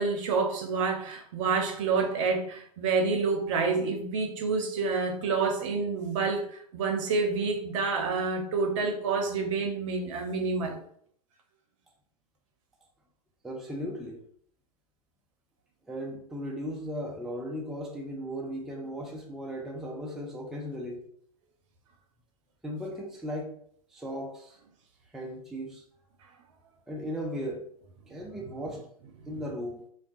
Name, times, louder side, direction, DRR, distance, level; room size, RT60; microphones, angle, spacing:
voice 1, 0.0-10.8 29.2-29.3, right 4 dB, 50° right, 3 dB, 0.7 m, -28 dB
voice 2, 13.4-14.2 15.9-21.0 22.6-23.6 23.9-24.6 25.1-25.8 26.9-27.7 28.1-28.9 29.3-29.9, equal, ahead, -1 dB, 0.4 m, -36 dB
3.4 x 2.3 x 2.7 m, 0.64 s
figure-of-eight pair, 100°, 20 cm